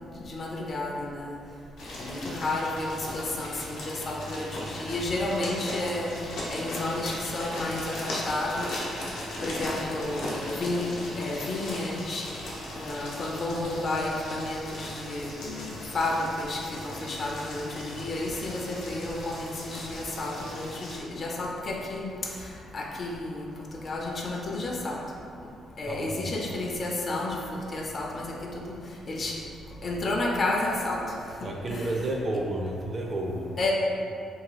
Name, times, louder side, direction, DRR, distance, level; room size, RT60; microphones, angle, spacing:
voice 1, 0.2-1.3 2.0-6.1 6.5-8.9 9.4-12.3 12.7-22.5 22.7-25.0 25.8-28.7 29.1-29.4 29.8-31.0 31.7-32.0 33.6-33.7, left 2 dB, 45° left, -1 dB, 0.4 m, -31 dB
sound 1, 1.8-21.0, left 1 dB, 85° left, 0.6 m, -38 dB
voice 2, 25.9-26.3 31.4-33.5, right 1 dB, 40° right, 0 dB, 0.4 m, -31 dB
2.7 x 2.3 x 2.9 m, 2.4 s
cardioid pair, 90°, 0 cm